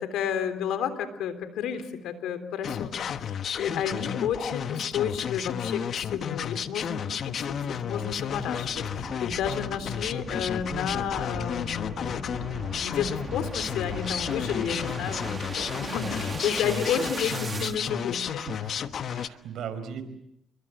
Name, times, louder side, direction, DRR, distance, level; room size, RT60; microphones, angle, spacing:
voice 1, 0.0-18.4, left 8 dB, 85° left, 10 dB, 3.5 m, -32 dB
sound 1, 2.6-19.3, left 8 dB, 60° left, 1.2 m, -32 dB
sound 2, 6.3-17.8, right 3 dB, 30° right, 2.0 m, -39 dB
voice 2, 17.2-18.0 18.3-18.8 19.0-20.0, right 7 dB, 75° right, 10 dB, 4.9 m, -38 dB
29.5 x 23.0 x 7.9 m, 0.77 s
cardioid pair, 90°, 0 cm